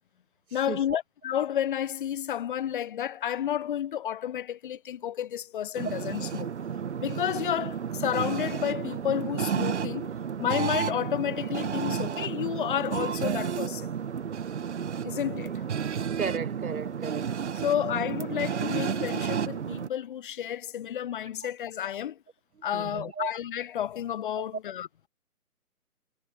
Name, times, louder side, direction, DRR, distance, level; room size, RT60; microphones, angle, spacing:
voice 1, 0.5-6.5 7.0-10.1 10.4-13.9 15.0-15.6 17.6-22.2 22.6-25.1, left 10 dB, 35° left, 3.2 m, -31 dB
sound 1, 5.7-19.9, right 7 dB, 50° right, 2.3 m, -32 dB
voice 2, 16.2-17.4 22.7-23.3 24.4-24.5, right 5 dB, 70° right, 3.6 m, -35 dB
hypercardioid pair, 160°, 45 cm